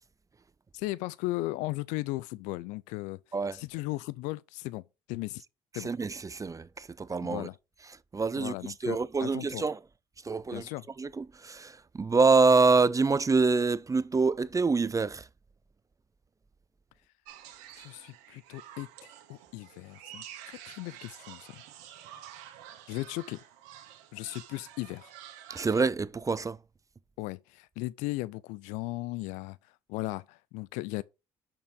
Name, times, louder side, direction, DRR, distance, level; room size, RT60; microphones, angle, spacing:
voice 1, 0.7-3.2 3.5-5.4 5.7-5.9 7.2-7.6 8.4-9.6 10.5-10.8 17.8-18.9 19.3-21.6 22.9-23.4 24.1-25.1 27.2-31.0, left 19 dB, 85° left, 0.4 m, -36 dB
voice 2, 5.8-7.5 8.1-8.5 8.8-9.8 10.2-10.7 11.0-15.3 25.5-26.6, right 4 dB, 25° right, 0.6 m, -26 dB
sound 1, 17.2-25.8, right 11 dB, 85° right, 1.5 m, -49 dB
6.3 x 5.9 x 5.2 m
supercardioid pair, 60°, 13 cm